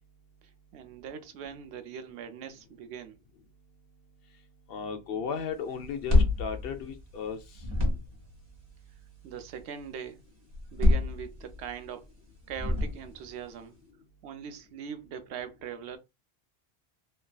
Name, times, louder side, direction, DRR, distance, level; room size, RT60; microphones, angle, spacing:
voice 1, 0.7-3.1 9.2-10.2 10.7-12.1 12.4-13.8 14.2-16.0, right 7 dB, 85° right, 0.8 m, -41 dB
voice 2, 4.7-7.4, left 6 dB, 65° left, 0.8 m, -35 dB
sound 1, 5.8-7.3 7.6-8.3 10.5-11.7 12.5-13.3, left 2 dB, 25° right, 1.0 m, -26 dB
3.1 x 2.6 x 2.2 m
omnidirectional pair, 1.1 m